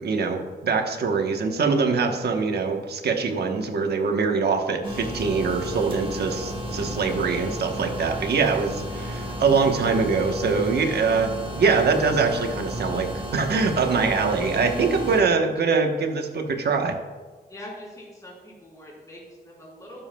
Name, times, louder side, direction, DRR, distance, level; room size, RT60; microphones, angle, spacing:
voice 1, 0.0-17.0, right 4 dB, 75° right, 4 dB, 1.1 m, -23 dB
sound 1, 4.8-15.2, equal, 30° right, 1.3 m, -33 dB
voice 2, 17.5-20.1, left 1 dB, 20° left, -4 dB, 3.3 m, -43 dB
12.5 x 10.5 x 2.2 m, 1.3 s
wide cardioid pair, 165°, 17 cm